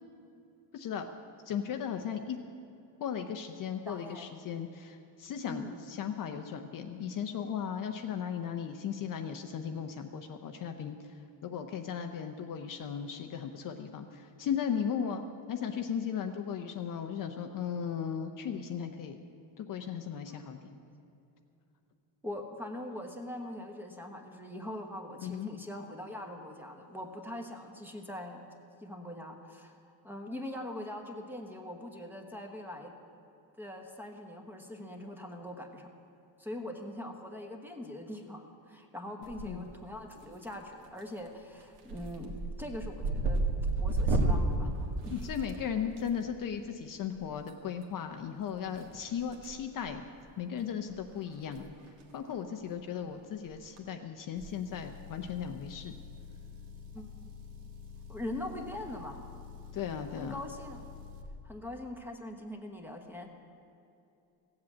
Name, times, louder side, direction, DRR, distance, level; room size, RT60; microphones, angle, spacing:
voice 1, 0.7-1.0 1.5-2.4 3.0-11.1 11.4-15.2 15.5-19.3 19.6-20.7 25.2-25.5 39.2-39.7 45.1-50.0 50.4-51.7 52.1-55.9 59.7-60.4, left 8 dB, 40° left, 5 dB, 0.7 m, -36 dB
voice 2, 3.9-4.3 5.5-5.9 20.3-20.4 22.2-28.4 28.8-29.8 30.0-32.9 33.6-35.9 36.4-43.4 43.8-44.7 45.0-45.3 56.9-57.3 58.1-59.2 60.2-60.8 61.4-63.3, left 1 dB, 5° right, 3 dB, 1.1 m, -42 dB
sound 1, 39.2-39.8 40.1-40.6 41.0-41.3 41.6-46.0 47.4-47.5 48.7-49.5 49.8-50.0 50.6-50.7 50.9-51.0 51.4-51.6 51.9-52.0 53.5-53.8, right 2 dB, 80° right, 1.8 m, -31 dB
Motor vehicle (road) / Engine, 54.4-61.3, left 5 dB, 60° right, 1.4 m, -48 dB
16.0 x 7.8 x 8.4 m, 2.8 s
cardioid pair, 150°, 49 cm